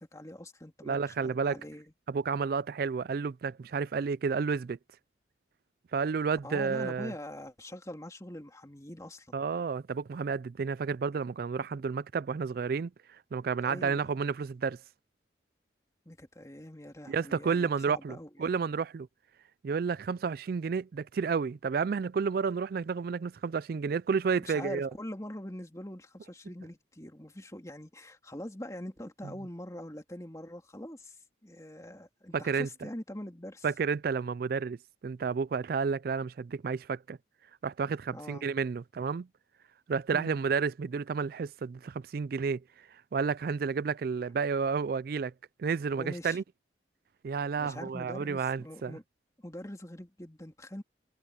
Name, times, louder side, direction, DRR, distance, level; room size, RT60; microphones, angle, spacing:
voice 1, 0.0-1.9 6.4-9.3 13.7-14.0 16.0-18.5 24.4-31.2 31.4-33.7 38.1-38.4 40.1-40.4 46.0-46.4 47.6-49.0 49.4-50.8, left 1 dB, 15° left, 2.9 m, -43 dB
voice 2, 0.9-1.6 2.1-4.8 5.9-7.1 9.3-14.8 17.1-19.1 19.6-24.9 32.3-32.7 33.6-34.8 35.0-37.2 37.6-39.3 39.9-42.6 43.1-45.3 45.6-46.4 47.2-49.0, right 5 dB, 50° right, 0.3 m, -31 dB
head